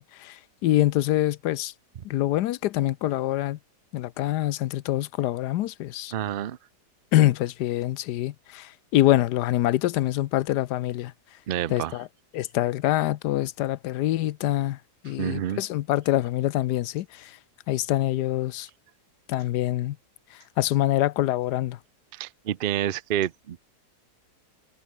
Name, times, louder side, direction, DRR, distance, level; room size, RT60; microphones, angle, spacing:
voice 1, 0.0-1.7 2.0-3.6 3.9-6.1 7.1-11.1 11.7-12.1 12.3-14.8 15.0-17.4 17.7-18.7 19.3-20.0 20.6-21.8, left 14 dB, 75° left, 1.2 m, -25 dB
voice 2, 6.1-6.6 11.5-12.0 15.2-15.6 22.1-23.6, right 10 dB, 65° right, 0.5 m, -28 dB
omnidirectional pair, 1.8 m